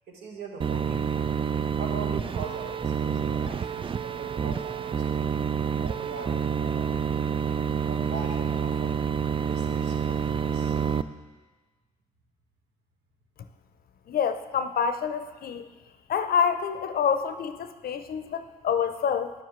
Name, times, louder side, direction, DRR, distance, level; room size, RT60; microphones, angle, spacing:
voice 1, 0.1-1.3 1.8-5.3 5.8-7.4 7.9-9.0 9.5-10.8, right 4 dB, 70° right, 1 dB, 1.4 m, -41 dB
sound 1, 0.6-11.0, right 7 dB, 30° right, 0.3 m, -28 dB
voice 2, 14.1-15.6 16.1-19.3, left 7 dB, 55° left, 10 dB, 0.6 m, -27 dB
9.9 x 7.3 x 3.1 m, 1.3 s
hypercardioid pair, 50°, 18 cm